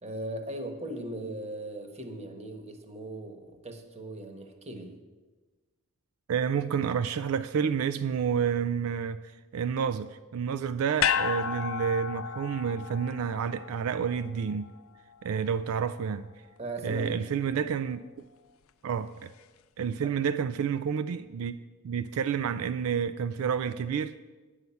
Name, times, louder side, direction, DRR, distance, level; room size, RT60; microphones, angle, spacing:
voice 1, 0.0-5.0 16.6-17.6 20.0-20.1, right 1 dB, 30° right, 1.1 m, -39 dB
voice 2, 6.3-9.2 9.5-14.7 15.2-16.3 16.8-18.0 18.8-19.3 19.8-21.6 21.8-24.2, right 7 dB, 75° right, 0.3 m, -29 dB
sound 1, 11.0-15.3 15.7-15.8, left 8 dB, 65° left, 0.4 m, -32 dB
9.2 x 5.7 x 8.3 m
head